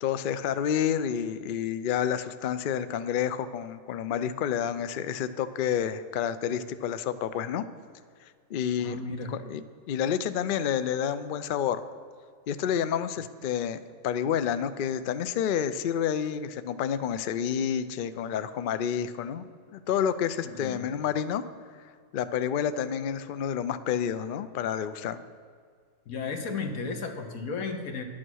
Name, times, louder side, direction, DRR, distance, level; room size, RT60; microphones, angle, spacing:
voice 1, 0.0-7.6 8.5-9.0 9.3-11.8 12.5-19.4 19.7-21.4 22.1-25.2, left 8 dB, 70° left, 12 dB, 0.5 m, -29 dB
voice 2, 8.8-9.4 20.5-20.9 26.1-28.0, left 4 dB, 85° left, 5 dB, 1.6 m, -34 dB
11.0 x 8.5 x 6.2 m, 2.1 s
omnidirectional pair, 1.5 m